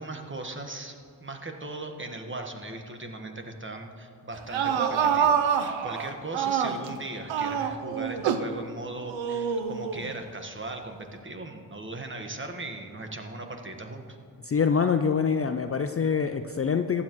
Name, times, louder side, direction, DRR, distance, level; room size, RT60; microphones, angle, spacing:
voice 1, 0.0-14.2, right 2 dB, 25° right, 4 dB, 1.4 m, -38 dB
sound 1, 4.3-7.0 7.3-8.5 9.1-10.1, right 7 dB, 90° right, 0.7 m, -26 dB
voice 2, 14.4-17.0, left 6 dB, 30° left, 8 dB, 0.5 m, -25 dB
15.0 x 9.9 x 3.1 m, 2.4 s
cardioid pair, 55°, 45 cm